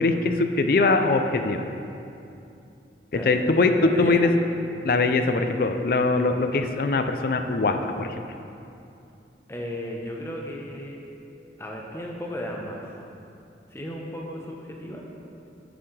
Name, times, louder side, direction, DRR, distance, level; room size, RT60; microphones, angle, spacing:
voice 1, 0.0-1.7 3.3-4.3 4.8-8.2, left 3 dB, 55° left, 7 dB, 0.4 m, -22 dB
voice 2, 3.8-4.3 9.5-11.0 11.6-12.9 13.7-15.0, equal, 15° left, -1 dB, 0.7 m, -35 dB
7.1 x 7.0 x 3.3 m, 2.7 s
head